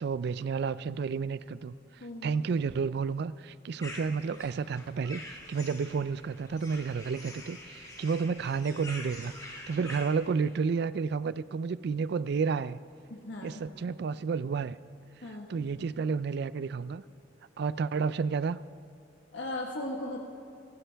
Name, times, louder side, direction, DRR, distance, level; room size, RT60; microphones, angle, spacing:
voice 1, 0.0-1.7 2.2-12.8 13.4-14.8 15.5-17.0 17.6-18.6, right 5 dB, 60° right, 17 dB, 0.4 m, -31 dB
voice 2, 2.0-2.3 13.1-13.6 15.2-15.5 19.3-20.2, left 1 dB, 80° left, 0 dB, 1.3 m, -37 dB
sound 1, 3.8-10.7, left 2 dB, 20° left, 1.7 m, -46 dB
27.0 x 12.5 x 3.4 m, 2.6 s
head